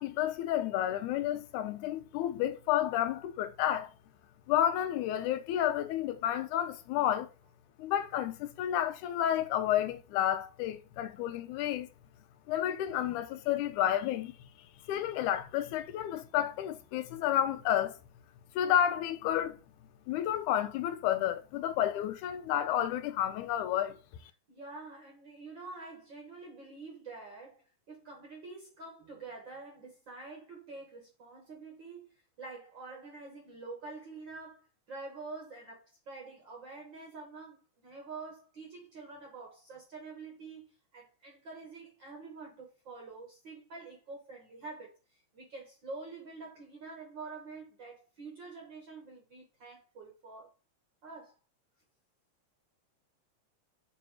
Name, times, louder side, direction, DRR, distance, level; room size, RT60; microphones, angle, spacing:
voice 1, 0.0-3.9 4.5-7.3 7.8-11.9 12.5-14.3 14.9-18.0 18.6-19.6 20.1-24.0, left 11 dB, 80° left, 1.9 m, -31 dB
voice 2, 24.5-32.1 32.4-50.5 51.0-51.3, right 3 dB, 50° right, 1.5 m, -47 dB
6.9 x 3.0 x 4.7 m
omnidirectional pair, 3.6 m